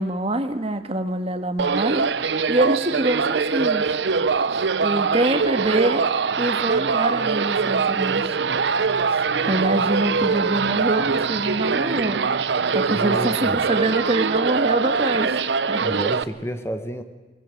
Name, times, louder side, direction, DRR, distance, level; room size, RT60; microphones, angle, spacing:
voice 1, 0.0-2.1 2.5-4.0 4.8-8.4 9.1-12.2 12.7-15.9, right 1 dB, 35° right, 8 dB, 1.5 m, -25 dB
sound 1, 1.6-16.2, right 5 dB, 80° right, 0.7 m, -23 dB
sound 2, 6.3-13.9, left 1 dB, 10° right, 3.5 m, -45 dB
voice 2, 12.9-13.6 15.8-17.0, equal, 15° left, 9 dB, 1.2 m, -30 dB
24.0 x 19.0 x 7.7 m, 1.3 s
head